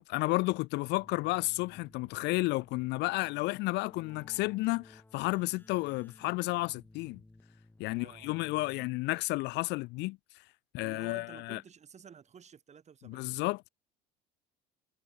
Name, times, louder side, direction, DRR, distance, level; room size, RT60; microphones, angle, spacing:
voice 1, 0.0-7.2 7.8-10.4 10.7-11.6 13.0-13.7, left 22 dB, 55° left, 0.4 m, -32 dB
Keyboard (musical), 0.9-9.2, left 2 dB, 10° left, 7.7 m, -58 dB
voice 2, 7.9-8.9 10.8-13.4, right 7 dB, 35° right, 5.1 m, -54 dB
supercardioid pair, 95°, 21 cm